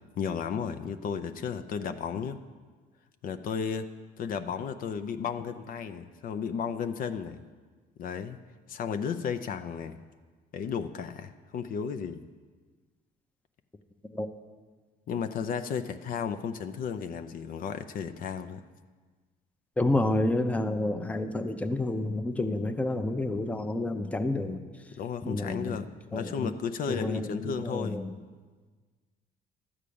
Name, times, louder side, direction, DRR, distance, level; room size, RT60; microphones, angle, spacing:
voice 1, 0.0-2.4 3.2-3.9 4.2-7.4 8.0-8.4 8.7-10.0 10.5-12.3 15.1-18.6 25.0-28.0, left 7 dB, 55° left, 8 dB, 0.6 m, -34 dB
voice 2, 19.8-24.9 25.2-25.8 26.1-26.5 26.9-28.2, left 2 dB, 10° left, 8 dB, 0.6 m, -29 dB
12.5 x 4.9 x 8.5 m, 1.4 s
cardioid pair, 110°, 17 cm